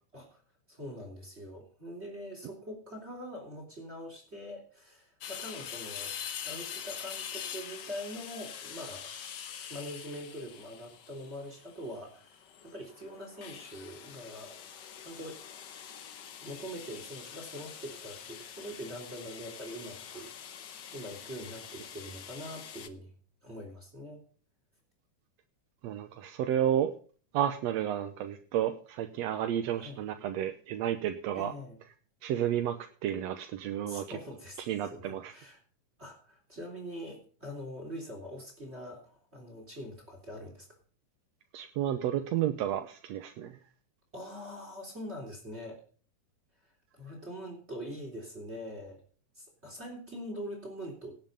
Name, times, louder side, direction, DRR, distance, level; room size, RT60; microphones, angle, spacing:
voice 1, 0.7-6.2 6.4-9.1 9.7-14.7 15.0-15.4 16.4-20.5 20.9-23.1 23.4-24.2 29.8-30.0 31.3-31.8 33.9-35.6 36.0-40.7 44.1-45.8 46.6-49.0 49.4-51.2, equal, 20° right, 1 dB, 3.5 m, -43 dB
sound 1, 5.2-22.9, left 8 dB, 85° left, 0.9 m, -44 dB
voice 2, 25.8-26.9 27.3-31.5 32.2-32.8 33.0-34.2 34.6-35.3 41.5-43.6, right 10 dB, 70° right, 7 dB, 1.9 m, -31 dB
18.0 x 7.7 x 5.4 m, 0.40 s
omnidirectional pair, 3.5 m